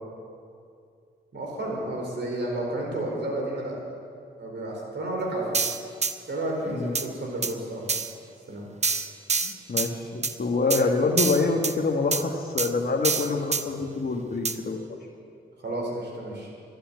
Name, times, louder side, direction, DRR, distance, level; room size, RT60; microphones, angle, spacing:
voice 1, 1.3-3.8 4.4-5.6 6.3-7.9 8.5-8.7 15.6-16.5, right 1 dB, 60° right, -1 dB, 4.4 m, -31 dB
sound 1, 5.5-6.1 6.9-7.1 7.4-7.5 7.9-8.1 8.8-9.9 10.2-10.3 10.7-10.8 11.2-11.7 12.1-12.2 12.6-12.7 13.0-13.6 14.4-14.6, right 4 dB, 35° right, 0.8 m, -26 dB
voice 2, 9.4-14.8, left 3 dB, 50° left, -1 dB, 1.5 m, -26 dB
12.0 x 10.0 x 9.6 m, 2.4 s
supercardioid pair, 45°, 20 cm